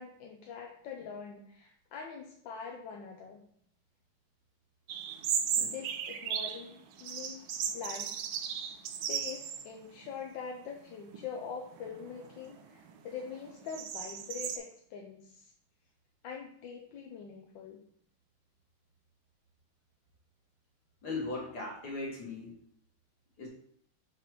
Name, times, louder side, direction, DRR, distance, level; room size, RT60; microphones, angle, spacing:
voice 1, 0.0-3.4 5.6-8.7 9.1-15.5 16.2-17.8, left 6 dB, 70° left, 1 dB, 1.3 m, -44 dB
sound 1, 4.9-6.6 7.0-9.7 10.0-10.1 10.9-11.3 11.8-14.6, right 8 dB, 75° right, 1.4 m, -36 dB
voice 2, 21.0-22.6 23.4-23.5, left 3 dB, 50° left, -3 dB, 2.2 m, -38 dB
6.3 x 3.4 x 4.6 m, 0.67 s
omnidirectional pair, 2.3 m